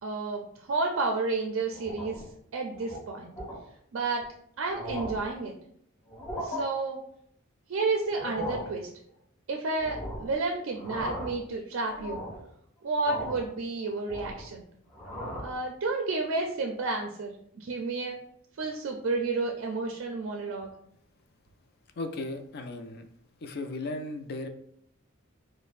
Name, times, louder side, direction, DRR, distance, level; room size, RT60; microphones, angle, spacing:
voice 1, 0.0-2.2 2.5-3.3 3.9-4.3 4.6-5.5 6.4-7.0 7.7-8.9 9.5-12.2 12.8-14.6 15.4-18.2 18.6-20.7, right 3 dB, 65° right, 2 dB, 0.4 m, -31 dB
sound 1, 1.7-2.3 2.7-3.0 3.4-3.6 4.2-4.3 4.6-5.3 6.1-6.6 8.0-8.7 9.8-10.3 10.7-11.4 11.8-12.4 13.0-13.5 13.8-14.5 14.9-15.6, equal, 25° left, 1.2 m, -37 dB
voice 2, 22.0-23.1 23.4-24.5, left 2 dB, 50° left, 7 dB, 0.4 m, -36 dB
5.0 x 2.0 x 2.4 m, 0.69 s
head